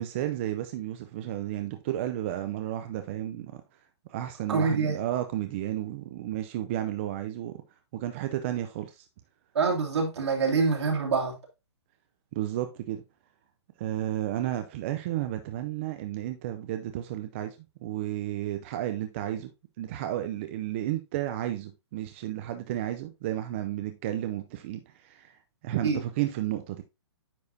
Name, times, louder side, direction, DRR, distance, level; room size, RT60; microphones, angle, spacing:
voice 1, 0.0-3.6 4.1-7.6 7.9-9.0 12.3-13.0 13.8-17.6 17.8-19.5 19.8-25.4 25.6-26.8, right 13 dB, 25° right, 0.5 m, -32 dB
voice 2, 4.5-5.0 9.5-11.4 25.8-26.0, right 4 dB, 70° right, 2.5 m, -25 dB
9.6 x 4.7 x 2.7 m
hypercardioid pair, 160°, 15 cm